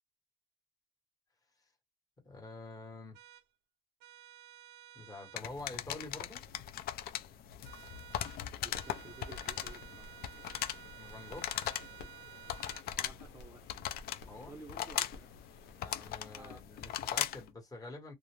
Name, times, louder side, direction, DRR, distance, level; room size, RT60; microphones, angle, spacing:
voice 1, 2.2-3.2 4.9-6.4 10.9-11.6 14.3-14.6 15.8-18.1, left 2 dB, 20° left, 1.2 m, -47 dB
sound 1, 3.1-3.4 4.0-5.4 7.6-8.4 8.7-12.9, right 12 dB, 85° right, 0.5 m, -53 dB
sound 2, 5.4-17.5, left 11 dB, 65° left, 0.4 m, -40 dB
sound 3, 8.5-16.2, left 3 dB, 90° left, 0.8 m, -55 dB
voice 2, 8.6-10.2 13.0-13.6 14.4-15.3 16.3-16.6 16.9-17.0, right 3 dB, 15° right, 0.6 m, -53 dB
2.4 x 2.0 x 3.0 m
cardioid pair, 110°, 17 cm